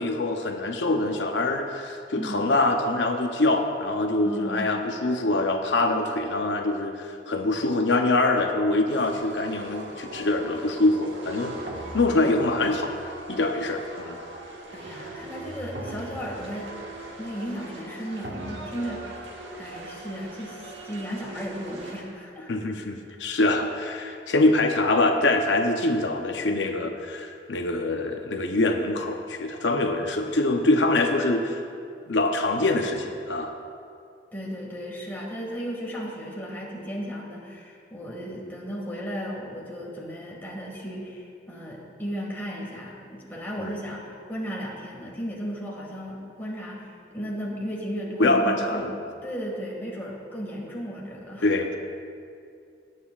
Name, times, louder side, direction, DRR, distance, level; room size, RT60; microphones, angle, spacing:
voice 1, 0.0-11.5 11.9-13.0 13.3-14.2 22.5-31.6 32.1-33.5 43.6-43.7 48.2-48.9 51.4-51.8, left 2 dB, 80° left, 4 dB, 0.7 m, -24 dB
voice 2, 2.2-2.5 4.2-4.7 14.7-16.7 17.2-19.2 19.6-22.5 34.3-48.9 49.2-51.5, equal, 10° left, -3 dB, 1.9 m, -35 dB
sound 1, 8.9-22.0, right 1 dB, 90° right, 1.5 m, -39 dB
18.5 x 9.1 x 2.4 m, 2.4 s
head